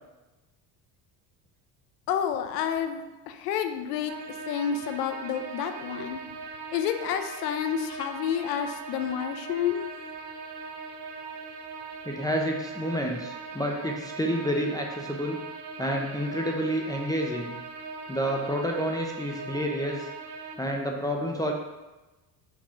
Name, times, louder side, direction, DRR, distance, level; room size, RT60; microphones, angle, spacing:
voice 1, 2.1-4.1 4.5-6.2 6.7-9.8, left 8 dB, 90° left, 8 dB, 0.8 m, -29 dB
sound 1, 4.1-20.6, right 4 dB, 60° right, 1.1 m, -40 dB
voice 2, 12.1-15.4 15.8-17.6 18.1-20.1 20.6-21.5, equal, 10° left, 0 dB, 0.8 m, -29 dB
5.2 x 5.1 x 5.8 m, 1.1 s
supercardioid pair, 85°, 45 cm